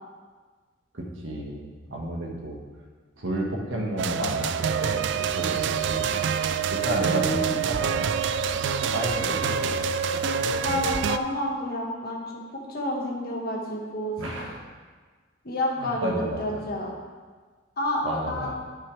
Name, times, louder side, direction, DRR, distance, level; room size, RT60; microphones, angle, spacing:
voice 1, 0.9-2.6 3.2-6.1 6.7-8.1 8.9-9.4 9.6-9.8 10.7-10.8 14.2-14.6 15.8-16.6 18.0-18.5, right 1 dB, 85° right, -1 dB, 1.6 m, -31 dB
sound 1, 4.0-11.2, right 6 dB, 65° right, 0.3 m, -26 dB
voice 2, 6.8-7.6 8.8-8.9 9.2-9.4 10.5-12.3 12.7-14.2 15.4-16.9 17.8-18.5, left 1 dB, 50° left, -2 dB, 1.6 m, -30 dB
12.5 x 5.6 x 3.4 m, 1.4 s
head